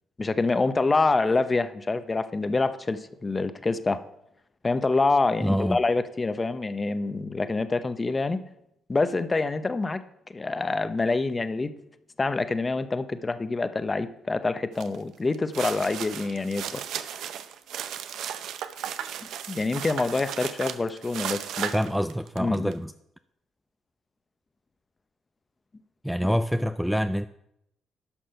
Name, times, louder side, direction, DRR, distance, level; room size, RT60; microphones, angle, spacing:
voice 1, 0.2-4.0 4.6-8.4 8.9-10.0 10.3-11.7 12.2-16.8 19.2-21.7 22.4-22.7, left 3 dB, 25° left, 11 dB, 0.7 m, -26 dB
voice 2, 5.4-5.8 21.7-22.9 26.0-27.3, equal, ahead, 11 dB, 0.3 m, -26 dB
sound 1, 14.8-15.0 15.3-22.7, right 9 dB, 80° right, 0.6 m, -35 dB
11.5 x 6.0 x 5.6 m, 0.80 s
cardioid pair, 90°, 0 cm